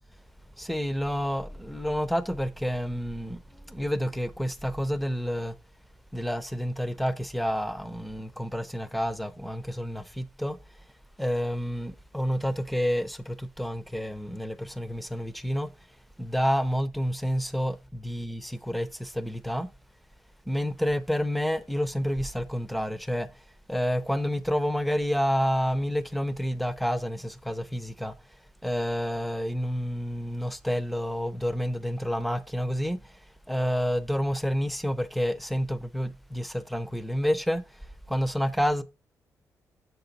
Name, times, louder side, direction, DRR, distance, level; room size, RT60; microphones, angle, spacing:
voice 1, 0.6-5.5 6.1-10.6 11.2-15.7 16.2-19.7 20.5-28.1 28.6-38.8, equal, ahead, 0.4 m, -29 dB
6.9 x 4.5 x 3.9 m
wide cardioid pair, 180°, 6 cm